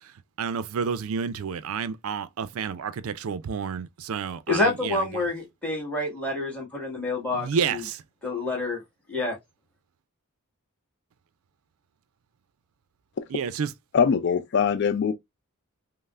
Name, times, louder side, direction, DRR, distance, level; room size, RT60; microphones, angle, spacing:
voice 1, 0.4-5.2 7.3-8.0 13.3-13.7, right 6 dB, 65° right, 0.4 m, -30 dB
voice 2, 4.5-7.8 8.2-8.8 9.1-9.4, left 2 dB, 5° left, 1.6 m, -28 dB
voice 3, 13.9-15.1, left 6 dB, 50° left, 0.4 m, -22 dB
5.3 x 2.0 x 2.3 m
head